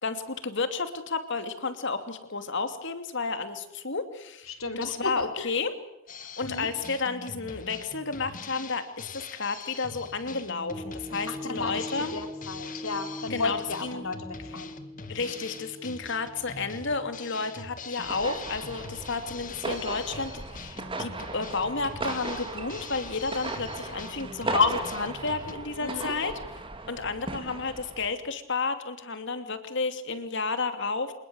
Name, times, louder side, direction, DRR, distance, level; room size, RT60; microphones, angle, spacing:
voice 1, 0.0-5.7 6.4-12.1 13.3-14.0 15.1-26.3 26.9-31.1, left 4 dB, 60° left, 9 dB, 2.9 m, -31 dB
voice 2, 4.5-5.5 6.4-6.7 11.3-14.7 25.8-26.1, left 3 dB, 85° left, 7 dB, 3.8 m, -34 dB
Drum kit, 6.1-25.5, left 4 dB, 40° left, 1.9 m, -43 dB
sound 1, 10.7-19.1 19.6-19.7, left 1 dB, 5° right, 1.2 m, -42 dB
sound 2, 18.0-28.1, right 2 dB, 25° right, 2.6 m, -37 dB
27.0 x 20.5 x 8.2 m, 0.85 s
head